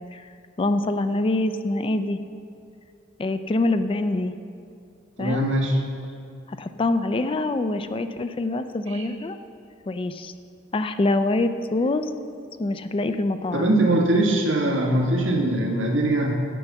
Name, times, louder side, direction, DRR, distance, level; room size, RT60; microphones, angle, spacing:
voice 1, 0.6-2.2 3.2-4.3 5.2-5.5 6.5-9.4 9.9-10.3 10.7-12.1 12.6-13.7, left 2 dB, 25° left, 10 dB, 0.4 m, -25 dB
voice 2, 5.2-5.8 8.9-9.0 13.5-16.5, right 1 dB, 80° right, 0 dB, 1.5 m, -22 dB
9.9 x 5.7 x 7.1 m, 2.5 s
head